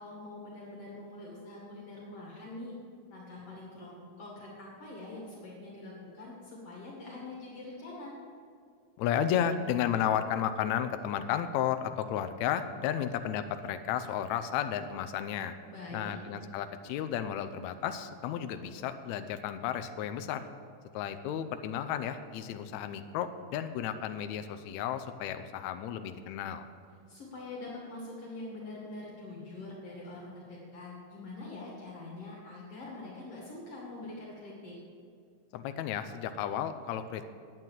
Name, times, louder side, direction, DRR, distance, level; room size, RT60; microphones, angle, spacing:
voice 1, 0.0-2.8 3.1-8.1 15.7-16.1 27.1-34.7, left 2 dB, 55° left, -4 dB, 3.0 m, -44 dB
voice 2, 9.0-15.6 15.9-20.5 20.9-26.7 35.5-37.3, left 9 dB, 80° left, 9 dB, 1.9 m, -33 dB
9.8 x 9.3 x 7.4 m, 2.3 s
omnidirectional pair, 3.4 m